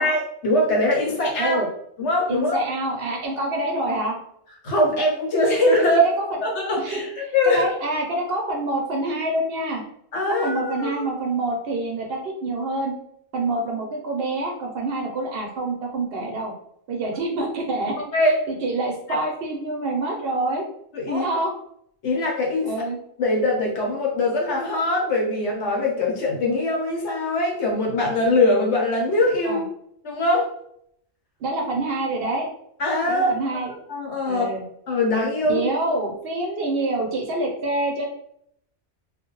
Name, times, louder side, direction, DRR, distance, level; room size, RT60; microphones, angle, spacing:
voice 1, 0.0-1.7 2.0-2.6 4.6-6.1 6.4-7.7 10.1-11.0 18.1-18.3 19.1-19.2 20.9-21.3 22.0-22.7 23.2-29.6 30.0-30.5 32.8-33.6 33.9-34.5 34.9-35.6, left 1 dB, 70° left, -1 dB, 1.0 m, -22 dB
voice 2, 2.3-4.1 5.9-6.1 6.8-9.8 10.3-13.0 13.3-16.5 16.9-18.1 18.5-20.6 21.1-21.5 22.6-23.0 29.4-29.6 31.4-32.5 33.1-33.7 34.3-34.6 35.5-38.0, right 2 dB, 65° right, 1 dB, 0.7 m, -26 dB
2.4 x 2.1 x 2.9 m, 0.70 s
omnidirectional pair, 1.2 m